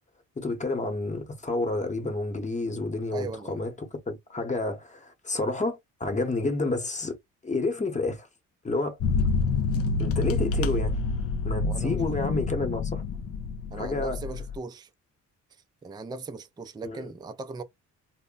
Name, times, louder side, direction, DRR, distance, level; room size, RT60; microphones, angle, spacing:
voice 1, 0.4-7.1 7.4-8.3 8.6-9.0 10.0-10.9 11.4-13.0 13.7-14.2 16.8-17.1, left 2 dB, 25° left, 1.0 m, -30 dB
voice 2, 3.1-3.6 11.6-12.0 13.7-14.9 15.8-17.6, right 4 dB, 15° right, 0.4 m, -38 dB
sound 1, 9.0-14.6, left 4 dB, 50° left, 0.4 m, -27 dB
2.1 x 2.1 x 3.7 m
cardioid pair, 90°, 30 cm